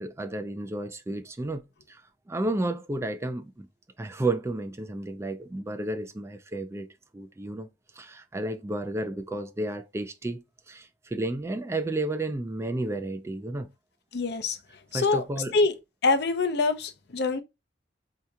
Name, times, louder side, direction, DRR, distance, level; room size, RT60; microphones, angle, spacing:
voice 1, 0.0-2.0 2.3-3.7 4.0-6.9 7.1-7.7 8.0-13.7 14.9-15.6, right 2 dB, 15° right, 0.3 m, -32 dB
voice 2, 14.1-14.6 14.9-15.2 15.5-15.7 16.0-17.4, left 3 dB, 60° left, 0.6 m, -25 dB
4.6 x 2.8 x 2.2 m
head